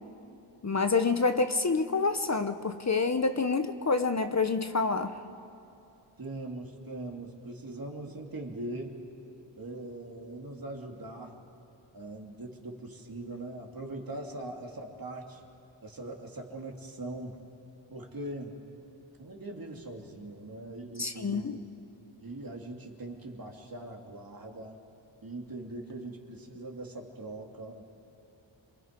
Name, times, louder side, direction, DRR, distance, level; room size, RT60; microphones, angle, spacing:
voice 1, 0.6-5.1 21.0-21.6, left 4 dB, 35° left, 9 dB, 0.9 m, -27 dB
voice 2, 6.2-9.0 9.6-11.4 11.9-15.4 15.8-17.4 17.9-18.5 19.2-21.7 22.2-24.8 25.2-27.8, right 2 dB, 45° right, 1 dB, 2.8 m, -41 dB
27.5 x 23.5 x 5.2 m, 2.8 s
wide cardioid pair, 75°, 47 cm